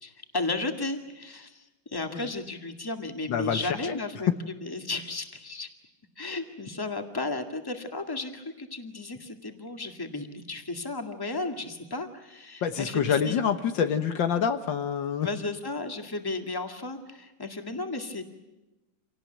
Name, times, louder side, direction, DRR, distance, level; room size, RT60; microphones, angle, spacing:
voice 1, 0.0-1.6 1.9-4.3 4.6-5.7 6.2-13.4 15.2-18.2, left 3 dB, 10° left, 5 dB, 1.9 m, -34 dB
voice 2, 3.3-4.0 12.6-15.3, left 7 dB, 75° left, 9 dB, 1.9 m, -27 dB
27.0 x 18.5 x 9.2 m, 1.1 s
omnidirectional pair, 2.0 m